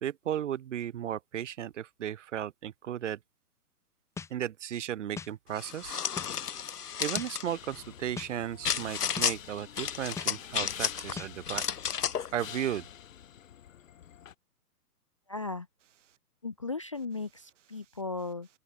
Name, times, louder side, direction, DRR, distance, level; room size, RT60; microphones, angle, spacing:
voice 1, 0.0-3.2 4.3-6.0 7.0-11.6 12.3-12.8, right 10 dB, 50° right, 2.2 m, -35 dB
sound 1, 4.2-4.3 5.2-5.3 6.2-6.3 7.2-7.3 8.2-8.3 9.2-9.3 10.2-10.3 11.2-11.3, left 5 dB, 5° left, 1.8 m, -39 dB
sound 2, 5.6-7.5 8.6-9.4 9.8-11.1 11.5-12.3, left 8 dB, 75° left, 2.4 m, -32 dB
sound 3, 7.4-14.3, left 10 dB, 55° left, 1.5 m, -48 dB
voice 2, 15.3-15.7 16.4-18.5, left 3 dB, 20° left, 0.5 m, -36 dB
open air
hypercardioid pair, 155°, 47 cm